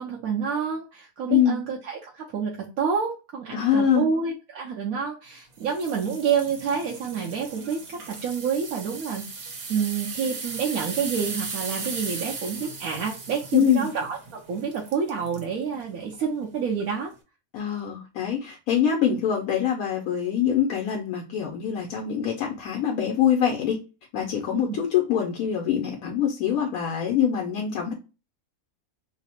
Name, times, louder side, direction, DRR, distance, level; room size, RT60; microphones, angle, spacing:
voice 1, 0.0-14.2 14.5-17.1 19.1-19.2 24.5-24.8, right 6 dB, 85° right, -1 dB, 1.1 m, -28 dB
voice 2, 3.5-4.1 13.5-13.9 17.5-23.8 24.1-27.9, left 9 dB, 80° left, 1 dB, 1.1 m, -24 dB
sound 1, 5.6-15.5 16.0-16.2 16.8-16.9, right 4 dB, 60° right, 1.1 m, -37 dB
3.2 x 2.0 x 4.2 m, 0.31 s
omnidirectional pair, 1.5 m